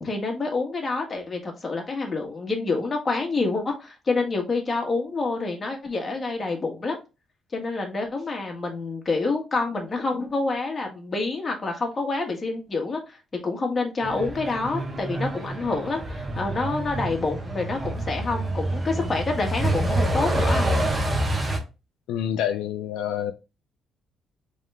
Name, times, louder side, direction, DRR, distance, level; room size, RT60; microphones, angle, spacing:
voice 1, 0.0-7.0 7.5-13.2 13.4-20.7, left 3 dB, 30° left, 1.4 m, -27 dB
Truck, 14.0-21.6, right 1 dB, 20° right, 1.1 m, -27 dB
voice 2, 22.1-23.3, left 10 dB, 85° left, 0.4 m, -27 dB
3.5 x 3.3 x 3.4 m
cardioid pair, 95°, 0 cm